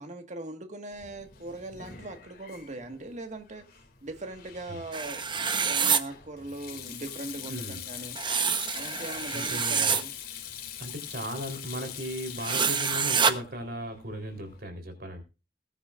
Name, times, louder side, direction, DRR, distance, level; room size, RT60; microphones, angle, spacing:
voice 1, 0.0-3.6 4.0-5.2 5.6-8.2 8.7-10.1, right 2 dB, 45° right, 5 dB, 1.7 m, -40 dB
Sink (filling or washing), 0.9-14.6, left 9 dB, 55° left, 2.6 m, -43 dB
sound 1, 4.9-6.0 8.2-10.0 12.4-13.3, right 6 dB, 25° right, 1.0 m, -26 dB
voice 2, 9.3-9.9 10.8-15.2, equal, 60° right, 6 dB, 3.8 m, -37 dB
21.0 x 10.0 x 2.5 m, 0.30 s
head